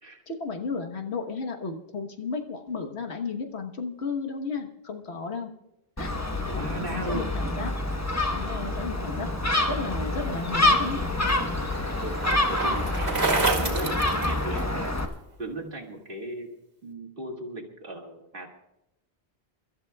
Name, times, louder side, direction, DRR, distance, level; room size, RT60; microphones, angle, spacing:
voice 1, 0.3-5.5 6.0-6.2 6.9-7.7 8.3-9.3 9.7-11.0, left 4 dB, 80° left, 4 dB, 1.5 m, -33 dB
Gull seagull, 6.0-15.0, left 2 dB, 15° left, 1.0 m, -27 dB
voice 2, 6.4-7.3 11.4-11.7 12.0-12.2 12.5-15.0 15.4-16.5 16.8-18.5, right 2 dB, 55° right, 1 dB, 2.3 m, -37 dB
Bicycle, 10.6-15.0, right 3 dB, 75° right, 2.3 m, -30 dB
28.5 x 13.0 x 2.3 m, 0.91 s
omnidirectional pair, 1.1 m